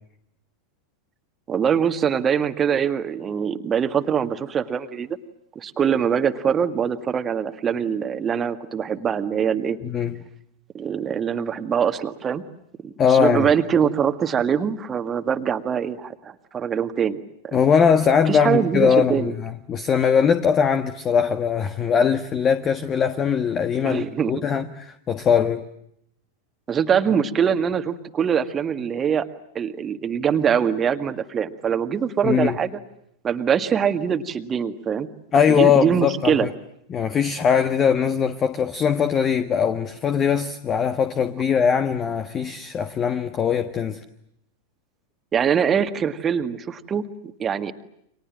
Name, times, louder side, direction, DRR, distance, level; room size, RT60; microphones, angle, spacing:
voice 1, 1.5-5.2 5.6-9.8 10.7-12.4 12.8-17.2 17.4-17.6 18.3-19.3 23.8-24.4 26.7-29.3 29.5-32.8 33.2-35.1 35.5-36.5 45.3-47.0 47.4-47.7, right 7 dB, 25° right, 1.9 m, -23 dB
voice 2, 9.8-10.2 13.0-13.5 17.5-25.6 32.2-32.6 35.3-36.5 36.9-44.0, left 7 dB, 25° left, 1.5 m, -21 dB
30.0 x 26.0 x 7.4 m
figure-of-eight pair, 90°, 0 cm